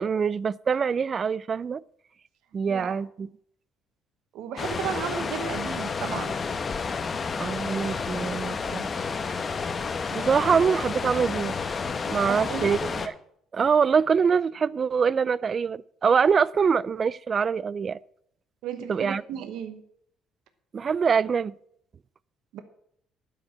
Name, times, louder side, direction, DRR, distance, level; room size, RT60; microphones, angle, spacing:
voice 1, 0.0-1.8 2.5-3.3 7.4-9.1 10.1-11.6 12.1-13.1 13.5-18.0 18.9-19.2 20.7-21.5, right 6 dB, 40° right, 0.4 m, -24 dB
voice 2, 4.3-6.4 12.3-12.8 18.6-19.8 22.5-22.6, right 8 dB, 75° right, 1.0 m, -34 dB
sound 1, 4.6-13.1, left 5 dB, 35° left, 1.0 m, -30 dB
11.5 x 5.2 x 8.4 m
supercardioid pair, 80°, 0 cm